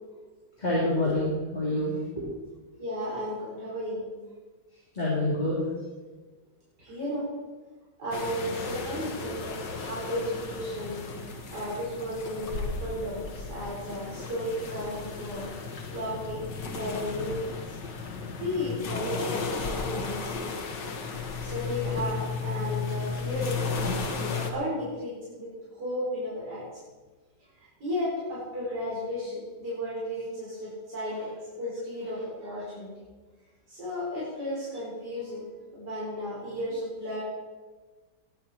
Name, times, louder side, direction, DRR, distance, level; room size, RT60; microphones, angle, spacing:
voice 1, 0.6-2.3 4.9-5.6, left 1 dB, 25° left, -6 dB, 3.6 m, -27 dB
voice 2, 2.8-4.0 6.8-7.3 8.0-15.5 15.9-16.4 16.7-17.6 18.4-20.6 21.4-26.7 27.6-31.3 31.6-32.9 33.7-35.4 35.7-37.2, left 1 dB, 70° right, -8 dB, 5.7 m, -34 dB
sound 1, 8.1-24.5, left 4 dB, 85° left, 2.2 m, -34 dB
20.0 x 11.0 x 4.6 m, 1.3 s
omnidirectional pair, 1.8 m